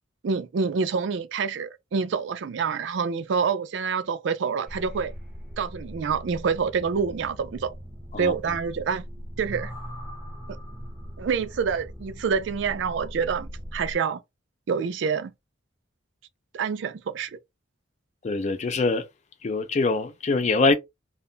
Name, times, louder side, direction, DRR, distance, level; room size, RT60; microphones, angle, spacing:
voice 1, 0.2-5.1 5.6-7.7 8.2-9.0 9.4-9.7 11.2-14.2 14.7-15.3 16.5-17.4, right 5 dB, 65° right, 0.4 m, -27 dB
sound 1, 4.7-14.0, equal, 5° right, 0.7 m, -40 dB
voice 2, 18.2-19.1 19.4-20.7, left 3 dB, 35° left, 0.3 m, -23 dB
2.1 x 2.0 x 3.7 m
head